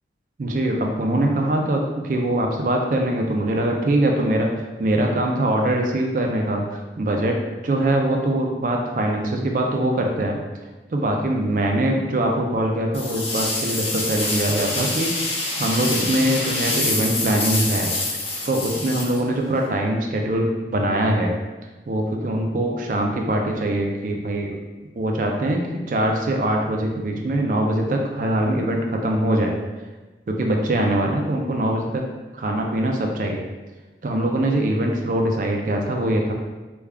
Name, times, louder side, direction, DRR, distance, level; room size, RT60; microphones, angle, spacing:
voice 1, 0.4-4.5 4.8-7.4 7.6-10.4 10.9-15.1 15.6-17.9 18.4-21.3 21.9-24.6 25.0-25.6 25.9-29.5 30.3-32.0 32.3-33.4 34.0-36.3, right 1 dB, 45° right, 1 dB, 0.4 m, -22 dB
sound 1, 12.9-19.7, left 2 dB, 35° left, 0.6 m, -26 dB
3.4 x 2.3 x 3.4 m, 1.2 s
head